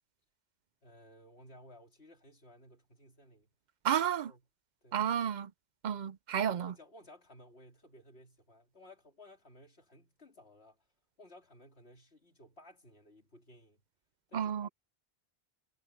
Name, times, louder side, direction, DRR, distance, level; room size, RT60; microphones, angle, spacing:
voice 1, 0.8-3.5 3.9-4.5 4.8-5.0 6.4-10.9 11.2-13.8 14.3-14.7, left 1 dB, 80° left, 3.5 m, -57 dB
voice 2, 3.8-4.3 4.9-5.5 5.8-6.7 14.3-14.7, right 9 dB, 55° right, 0.5 m, -31 dB
omnidirectional pair, 1.1 m